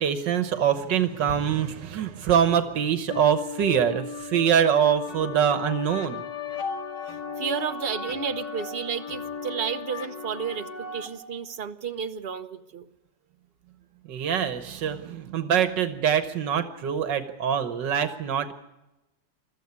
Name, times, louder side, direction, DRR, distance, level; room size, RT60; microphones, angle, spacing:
voice 1, 0.0-6.2 14.1-18.5, right 8 dB, 80° right, 11 dB, 1.7 m, -24 dB
sound 1, 3.1-11.1, left 5 dB, 75° left, 2.8 m, -36 dB
voice 2, 7.4-12.9, right 7 dB, 40° right, 9 dB, 0.9 m, -32 dB
22.0 x 14.0 x 9.5 m, 0.99 s
omnidirectional pair, 1.9 m